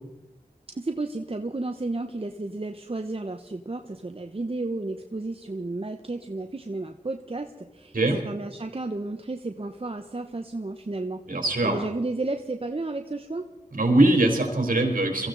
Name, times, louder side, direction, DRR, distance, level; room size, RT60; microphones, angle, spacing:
voice 1, 0.7-11.2 11.6-13.5, right 2 dB, 40° right, 5 dB, 1.0 m, -32 dB
voice 2, 11.2-11.8 13.7-15.3, right 2 dB, 65° right, 2 dB, 4.0 m, -22 dB
23.5 x 15.0 x 4.0 m, 1.1 s
wide cardioid pair, 40°, 15 cm